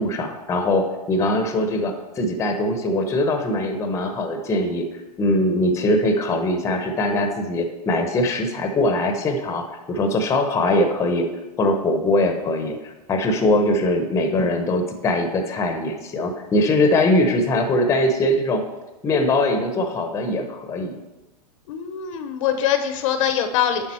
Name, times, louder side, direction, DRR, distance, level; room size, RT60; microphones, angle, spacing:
voice 1, 0.0-4.9 5.2-11.2 11.6-12.8 13.1-18.6 19.0-20.9, left 1 dB, 15° left, 5 dB, 0.8 m, -21 dB
voice 2, 21.7-23.9, left 9 dB, 50° left, 8 dB, 0.7 m, -23 dB
9.3 x 3.6 x 4.3 m, 1.1 s
hypercardioid pair, 130°, 21 cm